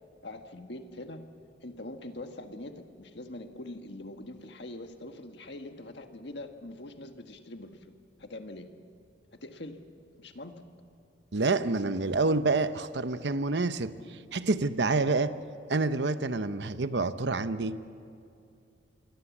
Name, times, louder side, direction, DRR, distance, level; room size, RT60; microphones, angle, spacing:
voice 1, 0.2-1.2 1.6-7.9 8.2-8.7 9.4-9.8 10.2-10.6, left 1 dB, 65° left, 6 dB, 1.6 m, -43 dB
voice 2, 11.3-15.4 15.7-17.9, right 3 dB, 65° right, 12 dB, 0.8 m, -28 dB
27.5 x 23.5 x 7.3 m, 2.5 s
head